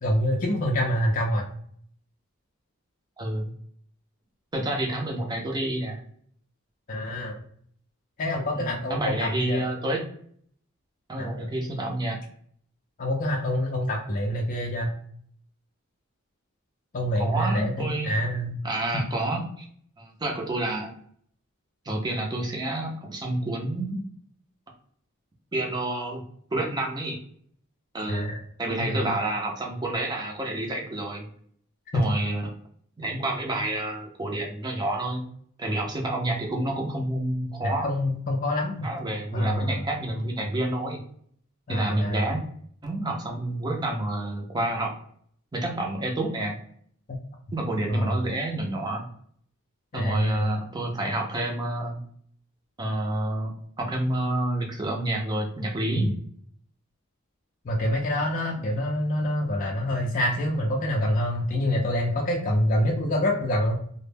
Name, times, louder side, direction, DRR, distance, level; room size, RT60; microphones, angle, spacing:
voice 1, 0.0-1.5 6.9-7.4 8.2-9.6 11.2-11.5 13.0-14.9 16.9-18.6 28.1-28.4 28.8-29.2 31.9-32.1 37.6-38.9 39.3-39.8 41.7-42.3 47.9-48.2 49.9-50.6 55.9-56.1 57.6-63.8, left 1 dB, 40° left, -1 dB, 0.4 m, -26 dB
voice 2, 3.2-3.5 4.5-6.0 8.5-10.1 11.1-12.2 17.2-18.2 18.6-19.7 20.0-20.9 21.8-24.0 25.5-26.2 26.5-27.2 27.9-28.3 28.6-31.2 31.9-32.5 33.0-35.2 35.6-37.9 38.8-41.0 41.7-42.4 42.8-44.9 45.5-46.6 47.5-49.0 49.9-52.0 52.8-56.1, right 1 dB, 20° right, 1 dB, 0.5 m, -29 dB
2.1 x 2.0 x 3.2 m, 0.63 s
head